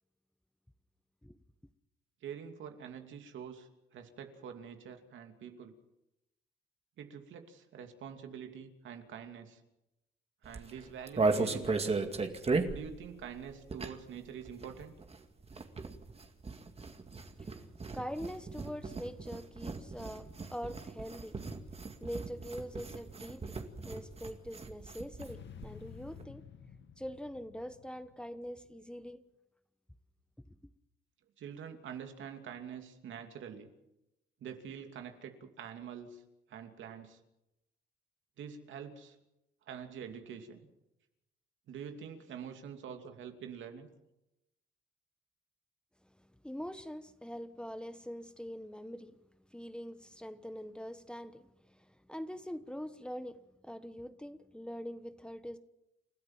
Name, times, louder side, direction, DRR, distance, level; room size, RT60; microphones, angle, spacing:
voice 1, 2.2-5.7 7.0-9.6 10.4-11.9 12.7-14.9 31.4-33.7 34.4-36.2 36.5-37.2 38.4-39.2 39.7-40.7 41.7-43.9, right 7 dB, 75° right, 2.8 m, -46 dB
sound 1, 10.4-14.2 14.4-25.3 25.6-25.7 25.9-26.2, right 3 dB, 30° right, 2.2 m, -36 dB
voice 2, 17.9-21.4 22.0-23.6 23.8-26.5 27.0-29.2 30.5-30.6 46.4-49.2 49.5-55.6, equal, 5° left, 1.2 m, -43 dB
sound 2, 25.2-28.7, left 8 dB, 65° left, 1.7 m, -52 dB
29.5 x 13.5 x 7.4 m
cardioid pair, 90°, 20 cm